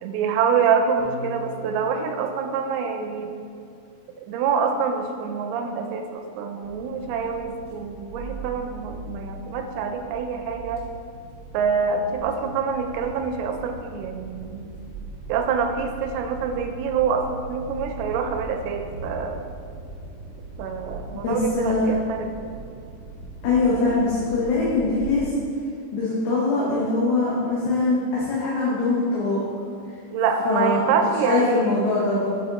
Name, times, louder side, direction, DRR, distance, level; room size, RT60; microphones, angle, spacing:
voice 1, 0.0-3.4 4.2-10.8 11.5-14.7 15.3-19.4 20.6-22.3 30.1-31.8, right 6 dB, 85° right, 5 dB, 2.4 m, -26 dB
sound 1, 1.0-3.6, equal, 60° left, 2.4 m, -41 dB
sound 2, 6.6-25.2, right 2 dB, 65° right, 1.6 m, -39 dB
voice 2, 21.2-21.9 23.4-25.3 25.9-29.4 30.5-30.8 31.3-32.3, left 3 dB, 80° left, -7 dB, 2.9 m, -22 dB
7.6 x 5.2 x 2.9 m, 2.3 s
omnidirectional pair, 4.5 m